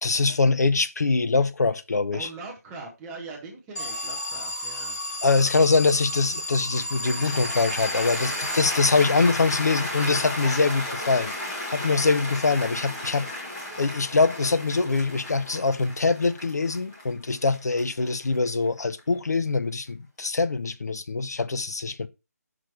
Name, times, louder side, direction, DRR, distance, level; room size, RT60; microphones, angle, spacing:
voice 1, 0.0-2.3 5.2-13.3 13.8-22.1, left 4 dB, 75° left, 0.8 m, -23 dB
voice 2, 2.1-5.0, right 3 dB, 5° right, 0.6 m, -41 dB
Alarm, 3.8-9.3, left 1 dB, 90° left, 2.6 m, -33 dB
Cheering / Applause, 6.8-19.0, left 1 dB, 15° left, 1.4 m, -34 dB
6.0 x 4.9 x 4.5 m
figure-of-eight pair, 175°, 9 cm